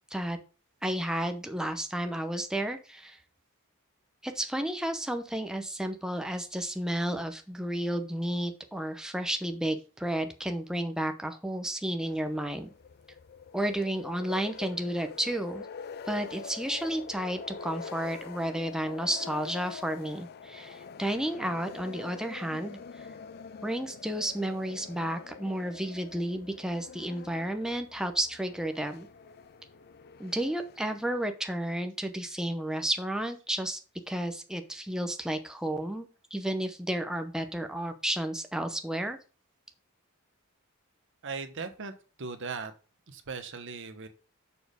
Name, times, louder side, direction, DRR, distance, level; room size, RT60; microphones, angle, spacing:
voice 1, 0.8-3.2 4.2-12.7 13.5-15.7 16.1-23.1 23.6-29.1 30.2-33.8 34.1-39.2, right 1 dB, 5° right, 6 dB, 0.7 m, -32 dB
sound 1, 12.0-31.1, left 6 dB, 45° left, 0.4 m, -45 dB
voice 2, 41.2-41.9 42.2-42.7 43.1-44.1, right 4 dB, 60° right, 8 dB, 1.0 m, -38 dB
7.0 x 4.3 x 5.1 m, 0.35 s
head